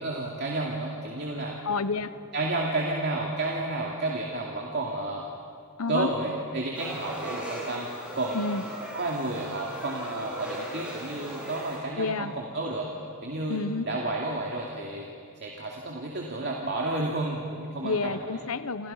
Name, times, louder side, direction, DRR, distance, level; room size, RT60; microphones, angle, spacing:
voice 1, 0.0-1.6 2.3-5.2 5.9-7.9 8.1-8.4 8.9-12.9 13.2-15.1 15.4-18.4, right 2 dB, 50° right, -1 dB, 2.5 m, -31 dB
voice 2, 1.6-2.1 5.8-6.1 8.3-8.6 12.0-12.3 13.5-13.9 17.8-18.9, left 4 dB, 70° left, 13 dB, 0.9 m, -29 dB
sound 1, 6.7-11.8, right 1 dB, 5° right, 7.6 m, -38 dB
28.5 x 28.5 x 5.6 m, 2.5 s
head